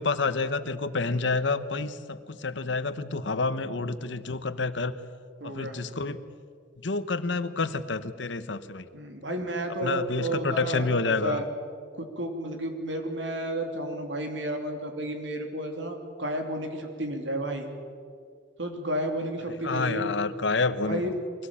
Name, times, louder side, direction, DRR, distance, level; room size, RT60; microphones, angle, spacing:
voice 1, 0.0-4.9 5.4-6.2 6.8-8.9 9.8-11.4 19.6-21.1, left 3 dB, 75° left, 12 dB, 1.1 m, -28 dB
voice 2, 5.4-5.8 8.9-11.4 11.9-17.7 18.6-20.1 20.8-21.1, right 1 dB, 80° right, 4 dB, 3.2 m, -32 dB
23.5 x 17.5 x 8.7 m, 2.2 s
head